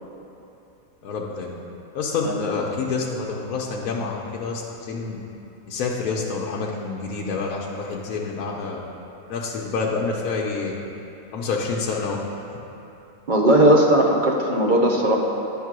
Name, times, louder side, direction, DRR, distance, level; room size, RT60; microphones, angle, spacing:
voice 1, 1.0-1.5 1.9-5.2 5.6-8.8 9.3-10.7 11.3-12.2, left 4 dB, 80° left, -2 dB, 1.1 m, -27 dB
voice 2, 13.3-15.2, right 1 dB, 45° right, -1 dB, 0.6 m, -17 dB
10.0 x 3.7 x 6.0 m, 2.9 s
omnidirectional pair, 1.5 m